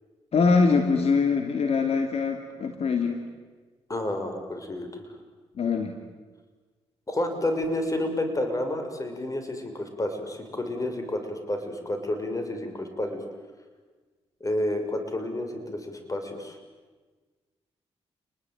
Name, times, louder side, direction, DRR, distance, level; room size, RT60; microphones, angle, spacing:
voice 1, 0.3-3.2 5.6-6.0, left 4 dB, 60° left, 5 dB, 2.7 m, -23 dB
voice 2, 3.9-5.1 7.1-13.2 14.4-16.6, left 1 dB, 30° left, 6 dB, 6.4 m, -30 dB
29.5 x 21.0 x 9.4 m, 1.4 s
cardioid pair, 65°, 12 cm